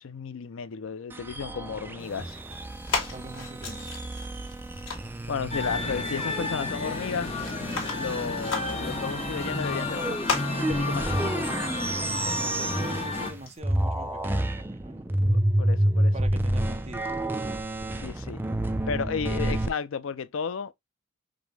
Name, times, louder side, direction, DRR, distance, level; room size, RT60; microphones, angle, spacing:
voice 1, 0.0-2.4 5.3-7.3 8.0-11.5 15.3-16.1 18.0-18.4 18.9-20.7, left 6 dB, 65° left, 0.4 m, -33 dB
sound 1, 1.1-13.4 13.6-19.7, right 1 dB, 10° right, 0.3 m, -30 dB
sound 2, 2.0-13.6, left 4 dB, 85° left, 1.9 m, -38 dB
voice 2, 3.1-3.9 12.4-15.2 16.1-17.1 19.4-19.7, right 2 dB, 30° right, 0.7 m, -42 dB
sound 3, 5.5-13.3, left 3 dB, 30° left, 0.9 m, -32 dB
5.2 x 2.2 x 3.2 m
head